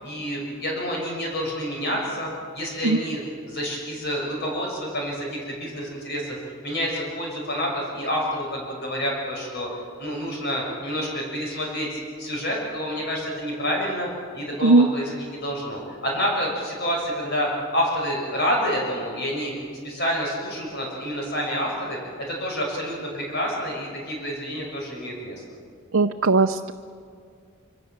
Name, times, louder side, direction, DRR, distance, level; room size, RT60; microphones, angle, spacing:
voice 1, 0.0-9.7 10.0-19.5 19.8-25.4, equal, 50° left, -2 dB, 6.3 m, -28 dB
voice 2, 25.9-26.7, right 3 dB, 65° right, 5 dB, 0.7 m, -18 dB
26.5 x 25.5 x 7.4 m, 2.2 s
head